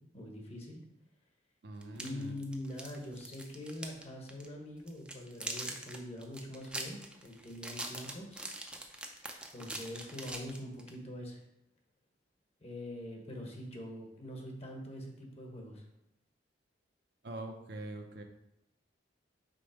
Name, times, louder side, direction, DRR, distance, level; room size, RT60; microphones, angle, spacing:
voice 1, 0.1-0.8 1.9-8.4 9.5-11.4 12.6-15.8, left 1 dB, 35° left, 1 dB, 1.2 m, -44 dB
voice 2, 1.6-2.3 17.2-18.2, right 1 dB, 60° right, 4 dB, 0.7 m, -43 dB
sound 1, 1.8-4.0 4.3-4.5 4.9-10.9, right 1 dB, 5° right, 0.5 m, -42 dB
5.2 x 4.0 x 5.0 m, 0.86 s
head